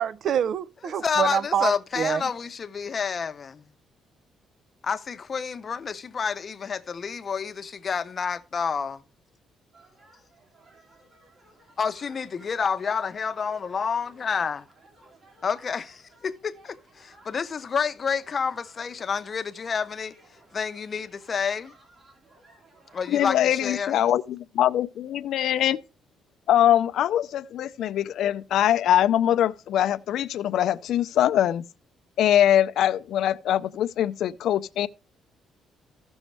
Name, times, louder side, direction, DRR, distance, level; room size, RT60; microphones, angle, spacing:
voice 1, 0.0-2.3, right 8 dB, 60° right, 0.4 m, -26 dB
voice 2, 1.0-3.6 4.8-9.0 11.8-14.7 15.4-20.1 20.5-21.7 22.9-24.0, left 6 dB, 35° left, 0.7 m, -29 dB
sound 1, 9.7-23.1, right 2 dB, 40° right, 3.5 m, -57 dB
voice 3, 23.1-25.8 26.5-31.6 32.2-34.9, left 11 dB, 75° left, 0.4 m, -23 dB
15.5 x 6.2 x 3.3 m
cardioid pair, 125°, 0 cm